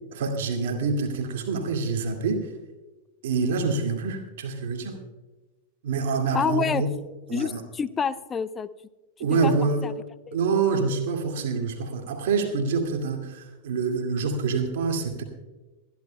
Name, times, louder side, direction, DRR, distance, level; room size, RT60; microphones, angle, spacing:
voice 1, 0.1-2.5 3.2-5.0 5.8-6.9 7.3-7.6 9.2-9.9 10.3-15.2, right 4 dB, 55° right, 3 dB, 2.2 m, -26 dB
voice 2, 6.3-6.8 7.3-8.7 9.4-9.5 9.8-9.9 10.3-10.4, left 6 dB, 20° left, 16 dB, 0.4 m, -27 dB
26.0 x 11.0 x 2.2 m, 1.2 s
figure-of-eight pair, 90°, 0 cm